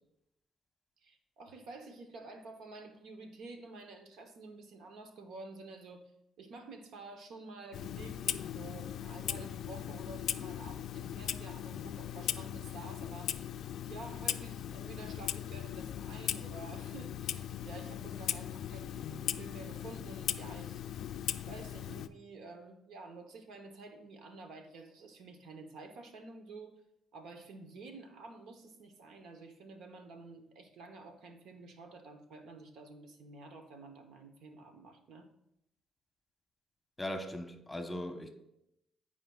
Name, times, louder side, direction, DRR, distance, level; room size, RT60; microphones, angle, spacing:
voice 1, 1.0-6.1 6.4-13.4 13.9-20.8 21.5-26.7 27.1-35.3, right 3 dB, 80° right, 1.0 m, -50 dB
Clock, 7.7-22.1, left 10 dB, 75° left, 0.3 m, -39 dB
voice 2, 37.0-38.3, left 1 dB, 15° left, 1.0 m, -39 dB
14.5 x 4.9 x 2.4 m
cardioid pair, 90°, 0 cm